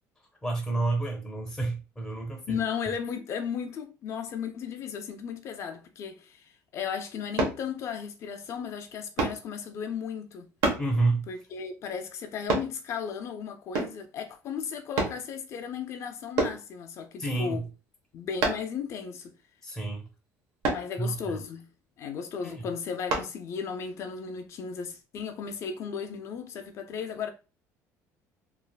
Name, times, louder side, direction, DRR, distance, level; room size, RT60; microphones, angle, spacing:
voice 1, 0.4-2.6 10.8-11.2 17.2-17.6 19.6-20.0 21.0-21.4 22.4-22.6, right 2 dB, 5° left, 0.6 m, -29 dB
voice 2, 2.5-10.5 11.3-17.6 18.1-19.3 20.7-21.7 22.0-27.3, left 7 dB, 45° left, 0.3 m, -35 dB
sound 1, 7.4-7.6 9.2-9.4 10.6-10.9 12.5-12.7 13.7-14.0 15.0-15.2 16.4-16.6 18.4-18.7 20.6-20.9 23.1-23.3 23.9-24.0, right 3 dB, 75° right, 1.0 m, -27 dB
3.2 x 2.4 x 2.2 m
cardioid pair, 150°, 7 cm